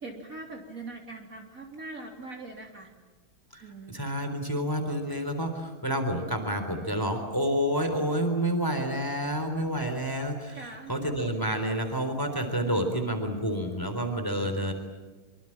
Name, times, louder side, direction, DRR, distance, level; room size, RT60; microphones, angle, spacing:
voice 1, 0.0-2.9 3.6-3.9 10.5-10.9, right 2 dB, 40° right, 2 dB, 3.9 m, -42 dB
voice 2, 3.9-14.7, equal, 10° left, 6 dB, 3.8 m, -29 dB
25.5 x 25.0 x 8.9 m, 1.2 s
omnidirectional pair, 2.3 m